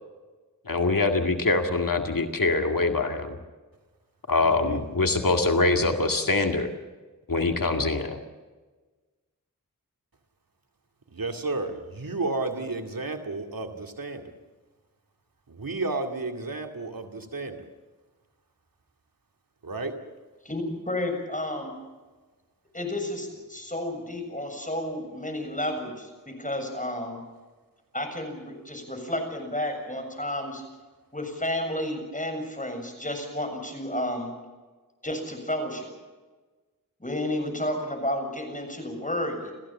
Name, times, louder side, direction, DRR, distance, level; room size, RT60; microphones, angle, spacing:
voice 1, 0.7-3.4 4.3-6.7 7.3-8.2, left 3 dB, 75° left, 4 dB, 2.1 m, -24 dB
voice 2, 4.4-4.8 11.1-14.3 15.5-17.6 19.6-20.0, right 3 dB, 90° right, 4 dB, 2.3 m, -32 dB
voice 3, 20.4-21.7 22.7-27.2 27.9-30.6 31.1-34.3 35.0-35.9 37.0-39.5, left 1 dB, 25° left, 4 dB, 7.2 m, -31 dB
29.5 x 15.0 x 7.3 m, 1.3 s
wide cardioid pair, 55°, 34 cm